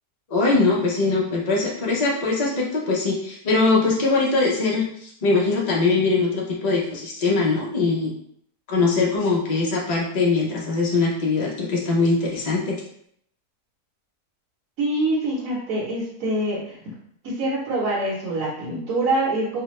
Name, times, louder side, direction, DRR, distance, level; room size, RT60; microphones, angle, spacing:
voice 1, 0.3-8.1 8.7-12.7, left 3 dB, 85° left, -4 dB, 0.3 m, -22 dB
voice 2, 14.8-16.7 17.2-19.6, right 1 dB, 60° right, -7 dB, 1.2 m, -25 dB
3.2 x 2.1 x 3.0 m, 0.68 s
omnidirectional pair, 1.7 m